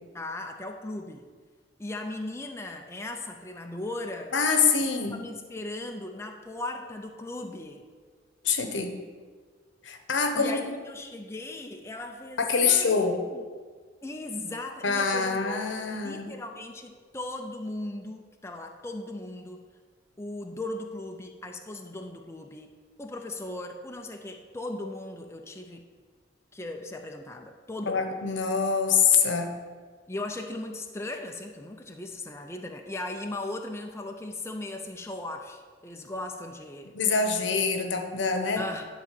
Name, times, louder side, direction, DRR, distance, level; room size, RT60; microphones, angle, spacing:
voice 1, 0.1-1.3 1.8-4.4 5.1-7.9 10.3-13.4 14.0-19.6 20.2-25.8 26.5-28.1 30.1-37.0 38.6-38.8, left 2 dB, 15° left, 3 dB, 0.5 m, -38 dB
voice 2, 4.3-5.2 8.4-8.9 9.8-10.7 12.4-13.2 14.8-16.3 27.9-29.5 36.9-38.7, left 5 dB, 75° left, 6 dB, 1.1 m, -25 dB
11.0 x 4.0 x 7.5 m, 1.5 s
head